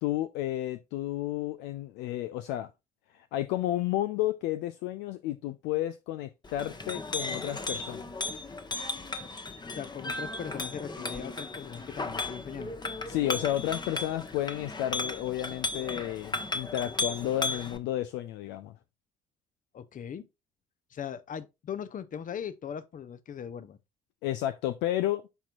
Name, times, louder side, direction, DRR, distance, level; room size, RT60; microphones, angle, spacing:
voice 1, 0.0-2.7 3.1-8.1 13.1-18.8 24.2-25.2, left 14 dB, 65° left, 0.5 m, -32 dB
Chink clink, 6.4-17.8, left 2 dB, 20° left, 1.1 m, -35 dB
voice 2, 9.7-12.8 19.7-20.3 20.9-23.8, left 8 dB, 40° left, 0.9 m, -39 dB
11.0 x 4.4 x 2.4 m
figure-of-eight pair, 45°, 20 cm